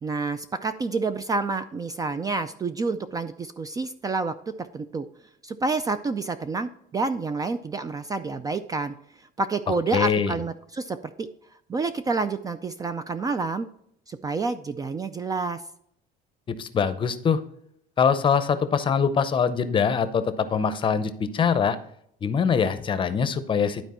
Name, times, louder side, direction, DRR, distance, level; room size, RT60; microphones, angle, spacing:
voice 1, 0.0-5.1 5.4-11.3 11.7-13.7 14.1-15.6, right 3 dB, 20° right, 10 dB, 0.4 m, -29 dB
voice 2, 9.9-10.4 16.5-17.4 18.0-21.8 22.2-23.8, left 6 dB, 25° left, 11 dB, 0.7 m, -23 dB
11.5 x 4.4 x 4.2 m, 0.71 s
cardioid pair, 140°, 18 cm